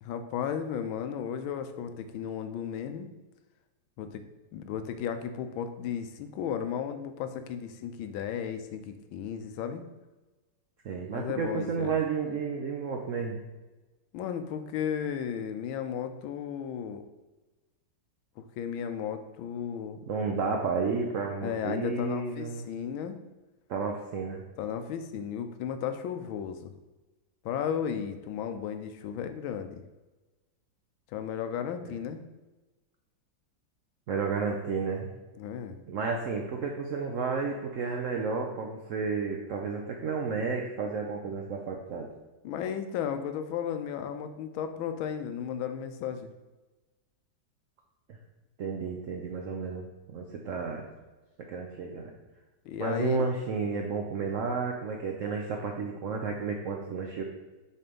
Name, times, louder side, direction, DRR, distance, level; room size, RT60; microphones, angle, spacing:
voice 1, 0.0-3.1 4.0-4.2 4.5-9.9 11.1-12.0 14.1-17.0 18.4-20.0 21.4-23.2 24.6-26.7 27.4-29.8 31.1-32.2 35.4-35.8 42.4-46.3 52.6-53.3, left 8 dB, 85° left, 9 dB, 1.4 m, -34 dB
voice 2, 10.8-13.4 20.1-22.7 23.7-24.4 31.8-31.9 34.1-35.1 35.9-42.1 48.6-49.8 50.1-50.9 51.5-52.1 52.8-57.2, right 4 dB, 75° right, 1 dB, 0.7 m, -32 dB
6.6 x 3.3 x 5.3 m, 1.2 s
omnidirectional pair, 2.2 m